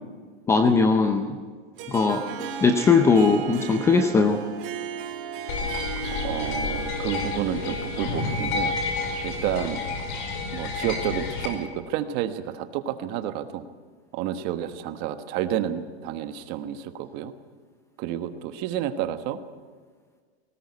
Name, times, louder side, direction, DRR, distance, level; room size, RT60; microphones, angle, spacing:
voice 1, 0.5-1.4 1.9-2.2 2.6-4.4, left 4 dB, 10° left, 6 dB, 0.6 m, -19 dB
Harp, 1.8-10.2, right 7 dB, 55° right, 3.6 m, -37 dB
sound 1, 5.5-11.5, left 4 dB, 45° left, 5.2 m, -30 dB
voice 2, 6.2-8.8 9.2-9.8 10.5-13.7 14.1-17.3 18.0-19.4, right 10 dB, 30° right, 10 dB, 1.2 m, -30 dB
19.0 x 18.5 x 9.7 m, 1.5 s
supercardioid pair, 165°, 33 cm